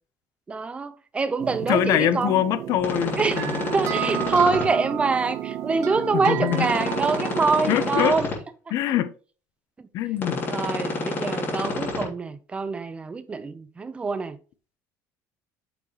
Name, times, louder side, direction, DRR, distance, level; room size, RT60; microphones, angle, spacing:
voice 1, 0.5-2.4 3.2-3.4 3.7-8.3 10.4-14.4, right 4 dB, 20° right, 0.8 m, -25 dB
sound 1, 1.4-8.0, right 12 dB, 55° right, 0.5 m, -32 dB
voice 2, 1.7-3.7 6.2-6.7 7.7-8.2 8.7-9.1 9.9-10.4, left 11 dB, 60° left, 0.9 m, -24 dB
sound 2, 2.8-4.6 6.5-8.3 10.2-12.0, left 3 dB, 30° left, 3.3 m, -29 dB
9.3 x 6.4 x 3.1 m
cardioid pair, 140°, 7 cm